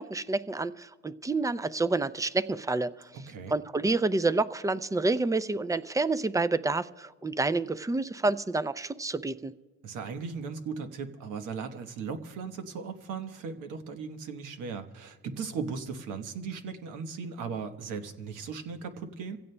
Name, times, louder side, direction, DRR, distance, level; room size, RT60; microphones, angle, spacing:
voice 1, 0.0-3.1 3.5-9.5, right 3 dB, 10° right, 15 dB, 0.4 m, -28 dB
voice 2, 3.1-3.5 9.8-19.4, right 5 dB, 90° right, 7 dB, 1.1 m, -37 dB
27.0 x 16.5 x 2.2 m, 1.5 s
cardioid pair, 90°, 30 cm